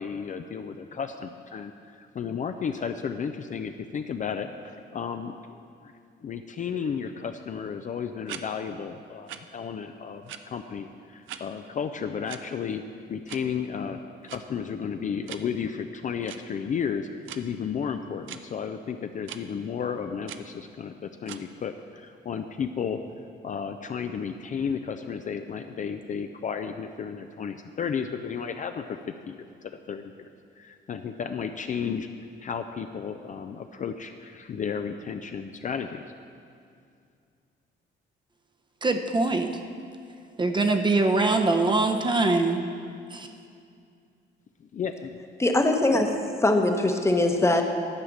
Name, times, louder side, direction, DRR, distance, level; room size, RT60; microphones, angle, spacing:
voice 1, 0.0-5.9 6.2-12.8 13.1-17.1 17.4-23.0 23.4-29.4 29.6-30.1 30.6-32.1 32.4-36.1 44.6-45.2, left 7 dB, 40° left, 7 dB, 0.4 m, -33 dB
sound 1, 8.3-8.4 9.3-9.4 10.3-10.4 11.3-11.4 12.3-12.4 13.3-13.4 14.3-14.4 15.3-15.4 16.2-16.4 17.3-17.4 18.3-18.4 19.3-19.4 20.3-20.4 21.3-21.4, right 11 dB, 75° right, 0.5 m, -39 dB
voice 2, 38.8-39.5 40.4-42.6 43.1-43.3, right 3 dB, 25° right, 5 dB, 0.7 m, -23 dB
voice 3, 45.4-47.6, left 2 dB, 15° left, 4 dB, 0.9 m, -22 dB
11.0 x 4.9 x 7.1 m, 2.4 s
cardioid pair, 90°, 20 cm